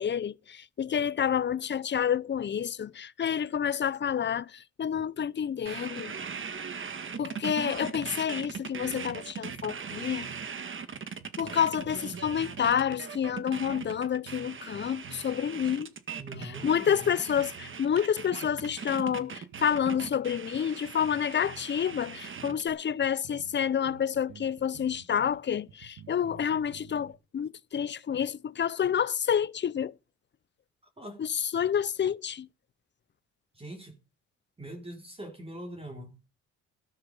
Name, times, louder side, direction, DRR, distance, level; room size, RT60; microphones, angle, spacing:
voice 1, 0.0-6.1 7.2-10.3 11.4-15.9 16.4-29.9 31.2-31.3 31.5-32.5, left 8 dB, 35° left, 0.7 m, -29 dB
sound 1, 5.7-22.7, right 6 dB, 40° right, 1.9 m, -40 dB
sound 2, 7.9-8.3 8.5-8.6 8.8-10.5 10.9-13.0 13.3-15.3 15.6-15.8 16.2-17.8 18.2-18.8 19.1-20.1 20.5-22.6 23.0-23.1 23.2-23.6 23.8-27.1, right 7 dB, 85° right, 1.8 m, -51 dB
voice 2, 16.2-17.4 31.0-31.2 33.5-34.0 34.6-36.1, right 1 dB, 20° right, 4.0 m, -42 dB
14.0 x 12.5 x 5.5 m
cardioid pair, 90°, 30 cm